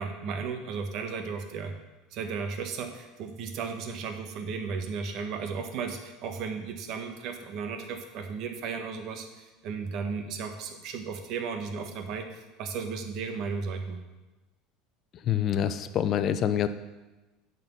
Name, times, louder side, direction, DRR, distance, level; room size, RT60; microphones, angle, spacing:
voice 1, 0.0-1.7 2.1-14.0, right 5 dB, 60° right, 6 dB, 1.3 m, -35 dB
voice 2, 15.3-16.7, left 9 dB, 45° left, 12 dB, 0.6 m, -26 dB
8.9 x 4.3 x 6.9 m, 1.1 s
supercardioid pair, 95°, 0 cm